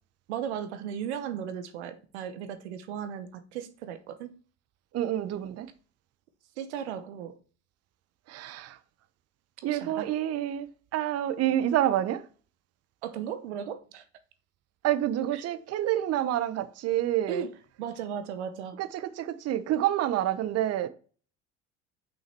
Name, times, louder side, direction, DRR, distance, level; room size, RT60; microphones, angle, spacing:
voice 1, 0.3-4.4 6.6-7.4 9.7-10.1 13.0-14.0 15.3-15.4 17.3-17.5 17.8-18.8, right 8 dB, 80° right, 0.9 m, -36 dB
voice 2, 4.9-5.7 8.3-8.8 9.6-12.2 14.8-17.5 18.8-20.9, right 12 dB, 45° right, 0.8 m, -28 dB
5.8 x 5.7 x 4.4 m
hypercardioid pair, 70°, 33 cm